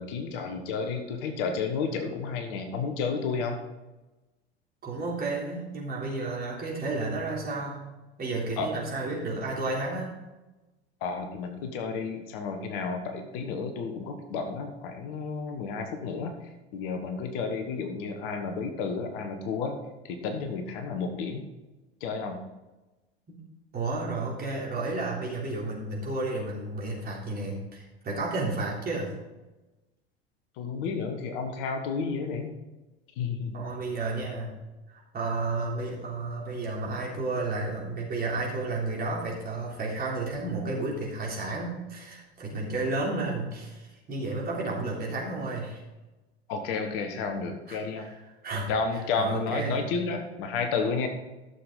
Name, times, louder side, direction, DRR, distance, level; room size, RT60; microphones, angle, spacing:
voice 1, 0.0-3.6 8.6-8.7 11.0-16.3 16.7-19.7 20.1-21.4 22.0-22.4 30.6-32.5 33.2-33.6 46.5-48.1 48.7-51.1, left 5 dB, 55° left, 5 dB, 1.5 m, -31 dB
voice 2, 4.8-7.8 8.2-10.1 23.3-23.4 23.7-29.1 33.5-34.5 34.9-45.8 47.7-49.8, right 2 dB, 30° right, -4 dB, 3.6 m, -32 dB
13.0 x 7.0 x 4.0 m, 1.1 s
figure-of-eight pair, 75°, 33 cm